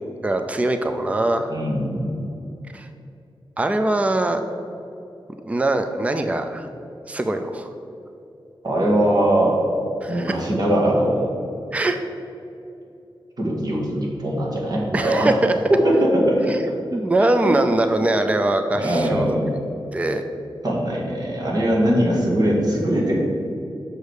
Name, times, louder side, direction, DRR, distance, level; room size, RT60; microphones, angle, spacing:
voice 1, 0.2-1.5 2.7-2.9 3.6-4.4 5.4-6.7 7.1-7.7 10.0-10.4 11.7-12.0 14.9-15.5 16.5-16.6 16.9-19.4 19.9-20.2, right 2 dB, 15° right, 7 dB, 0.4 m, -22 dB
voice 2, 1.5-2.2 8.6-9.6 10.1-11.3 13.4-15.3 15.7-16.5 17.4-17.5 18.8-19.5 20.6-23.2, right 1 dB, 50° right, -3 dB, 1.9 m, -21 dB
6.6 x 5.0 x 6.4 m, 2.7 s
wide cardioid pair, 135°, 9 cm